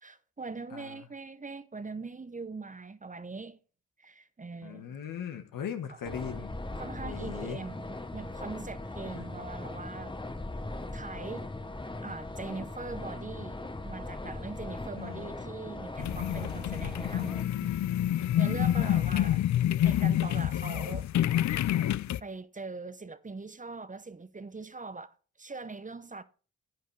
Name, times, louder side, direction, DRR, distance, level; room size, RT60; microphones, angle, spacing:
voice 1, 0.0-3.6 4.0-4.9 6.8-10.2 10.9-11.5 12.0-17.7 18.4-19.4 19.8-21.1 22.2-26.2, right 3 dB, 25° right, 0.8 m, -41 dB
voice 2, 0.7-1.1 4.6-6.5 7.0-7.6 9.1-9.2 14.9-15.3 18.8-19.0, left 8 dB, 85° left, 1.3 m, -39 dB
sound 1, 6.1-17.4, left 2 dB, 15° left, 1.0 m, -39 dB
sound 2, 16.0-22.2, left 12 dB, 60° left, 0.5 m, -27 dB
10.5 x 9.3 x 3.3 m
supercardioid pair, 50°, 32 cm